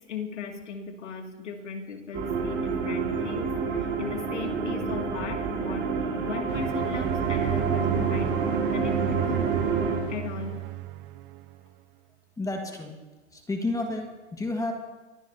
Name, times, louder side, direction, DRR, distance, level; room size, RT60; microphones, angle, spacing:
voice 1, 0.1-9.4 10.1-10.6, left 6 dB, 75° left, 3 dB, 2.4 m, -38 dB
sound 1, 2.1-10.0, right 5 dB, 30° right, 5.5 m, -28 dB
sound 2, 6.5-11.6, right 19 dB, 45° right, 0.7 m, -33 dB
voice 2, 12.4-13.0 13.3-14.7, left 2 dB, 10° left, 3 dB, 1.6 m, -31 dB
23.0 x 16.0 x 2.8 m, 1.2 s
hypercardioid pair, 115°, 36 cm